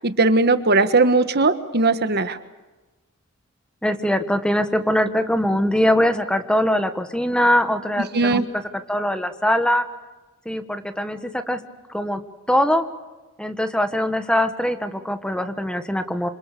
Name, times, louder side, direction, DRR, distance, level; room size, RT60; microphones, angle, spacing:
voice 1, 0.0-2.4 8.1-8.4, right 3 dB, 50° right, 10 dB, 1.4 m, -18 dB
voice 2, 3.8-8.4 8.9-9.8 10.4-11.6 11.9-12.2 12.5-12.8 13.4-16.3, equal, 5° left, 8 dB, 1.4 m, -22 dB
27.5 x 27.5 x 6.9 m, 1.2 s
head